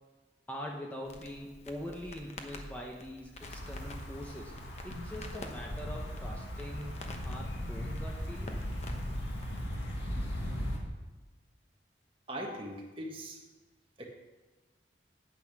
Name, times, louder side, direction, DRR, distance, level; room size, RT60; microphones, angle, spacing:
voice 1, 0.5-4.5 4.8-8.8, equal, 10° left, -1 dB, 0.9 m, -43 dB
Crackle, 1.1-9.7, left 1 dB, 35° left, 1.0 m, -48 dB
sound 1, 3.4-10.8, equal, 80° left, 2.1 m, -38 dB
voice 2, 12.3-13.4 14.0-14.1, right 1 dB, 30° right, 0 dB, 1.5 m, -40 dB
9.5 x 8.6 x 6.0 m, 1.2 s
head